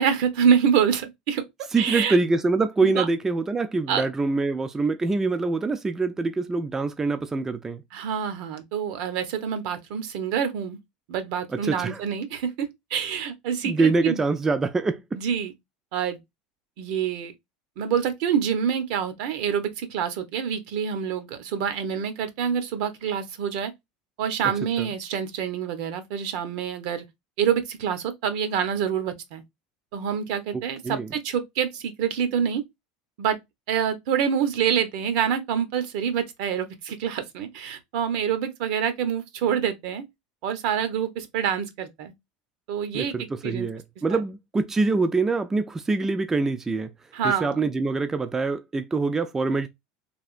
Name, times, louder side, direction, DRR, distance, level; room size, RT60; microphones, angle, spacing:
voice 1, 0.0-1.4 1.8-2.2 2.8-3.1 3.9-4.1 7.9-10.8 11.1-14.2 15.1-15.5 15.9-16.2 16.8-17.3 17.8-23.7 24.2-27.0 27.4-29.4 29.9-32.6 33.2-33.4 33.7-40.0 40.4-42.1 42.7-43.1 43.4-43.7 44.1-44.2 47.1-47.7, right 8 dB, 70° right, 0.8 m, -26 dB
voice 2, 1.7-7.8 11.5-12.0 13.6-15.2 24.8-24.9 30.5-31.1 42.9-46.9 47.2-49.7, right 3 dB, 15° right, 0.3 m, -25 dB
3.4 x 2.5 x 2.4 m
supercardioid pair, 125°, 3 cm